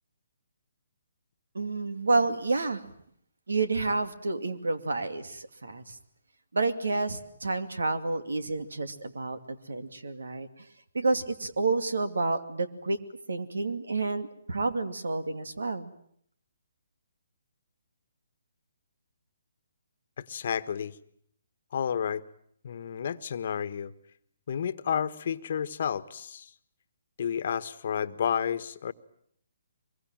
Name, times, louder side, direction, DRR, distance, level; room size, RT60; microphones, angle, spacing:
voice 1, 1.5-2.9 3.5-6.0 6.5-10.7 10.9-13.0 13.3-15.9, right 3 dB, 85° right, 10 dB, 2.5 m, -29 dB
voice 2, 20.2-20.9 21.7-22.2 22.6-23.9 24.5-26.5 27.2-28.9, left 8 dB, 55° left, 13 dB, 1.3 m, -31 dB
24.5 x 22.5 x 9.0 m, 0.66 s
hypercardioid pair, 155°, 0 cm